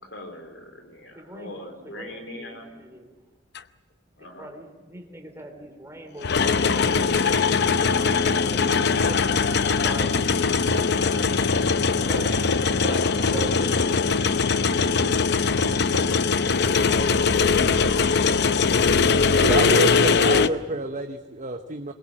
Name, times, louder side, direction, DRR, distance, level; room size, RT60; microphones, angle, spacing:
voice 1, 0.0-2.7 4.2-4.5, left 1 dB, 75° left, 6 dB, 3.9 m, -41 dB
voice 2, 0.9-3.2 4.2-7.2 8.5-10.1 12.0-12.3 12.8-14.1 14.5-14.9 16.8-17.4, right 1 dB, 15° right, 4 dB, 3.7 m, -41 dB
sound 1, 3.6-3.7 6.2-20.5, left 5 dB, 60° left, 0.8 m, -21 dB
voice 3, 19.3-21.9, right 2 dB, 40° right, 6 dB, 1.0 m, -28 dB
22.0 x 21.5 x 7.7 m, 1.2 s
head